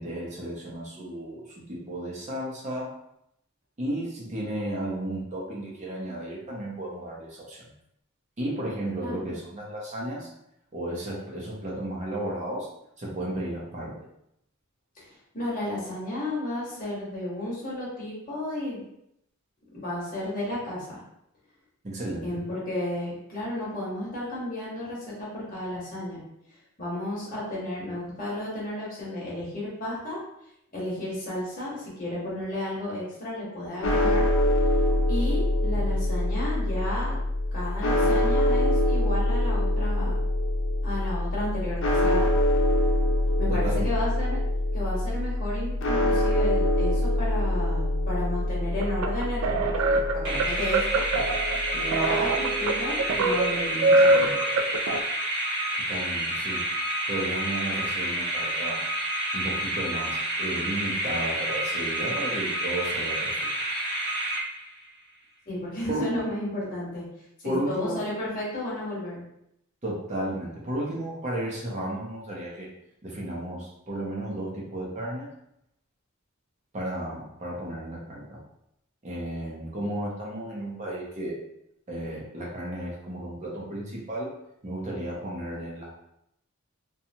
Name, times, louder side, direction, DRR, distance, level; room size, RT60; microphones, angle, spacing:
voice 1, 0.0-2.9 3.8-7.7 8.4-10.3 10.7-12.7 13.0-14.1 21.8-22.4 43.5-44.0 55.9-56.7 57.1-58.8 59.3-63.4 65.9-66.1 67.4-68.0 69.8-72.7 73.0-75.3 76.7-78.4 79.0-81.4 81.9-84.3 84.6-86.0, right 1 dB, 35° right, -4 dB, 0.6 m, -33 dB
voice 2, 9.0-9.4 15.0-18.8 19.7-21.0 22.2-26.2 26.8-30.2 30.7-34.3 35.1-37.2 37.5-40.2 40.8-42.3 43.4-44.4 44.7-50.8 51.7-54.3 65.5-67.0 67.4-69.2, left 1 dB, 40° left, -6 dB, 1.1 m, -33 dB
sound 1, 33.8-52.1, left 1 dB, 60° left, 0.4 m, -25 dB
sound 2, 48.8-55.0, right 2 dB, 85° right, 0.3 m, -24 dB
sound 3, 50.2-64.9, right 1 dB, 55° right, 0.8 m, -29 dB
2.8 x 2.2 x 2.6 m, 0.79 s
head